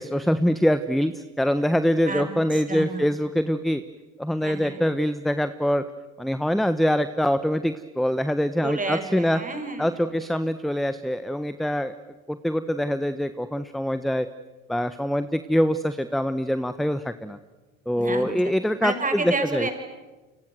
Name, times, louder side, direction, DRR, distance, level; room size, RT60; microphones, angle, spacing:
voice 1, 0.0-3.8 4.2-5.8 6.2-9.4 9.8-11.9 12.3-14.3 14.7-17.4 17.9-19.7, equal, ahead, 12 dB, 1.1 m, -24 dB
voice 2, 2.5-3.0 4.4-4.8 8.6-10.0 17.9-18.3 18.8-19.7, right 3 dB, 20° right, 5 dB, 6.6 m, -30 dB
29.0 x 26.0 x 7.7 m, 1.2 s
hypercardioid pair, 75°, 40 cm